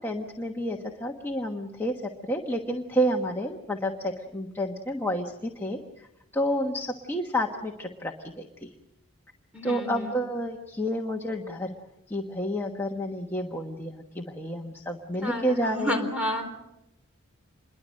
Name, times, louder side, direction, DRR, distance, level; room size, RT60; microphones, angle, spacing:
voice 1, 0.0-6.1 6.3-8.7 9.6-11.8 12.1-16.0, equal, 10° left, 1 dB, 1.3 m, -30 dB
voice 2, 9.5-10.1 15.2-16.5, left 1 dB, 5° right, 3 dB, 4.1 m, -30 dB
27.5 x 22.5 x 6.5 m, 0.88 s
head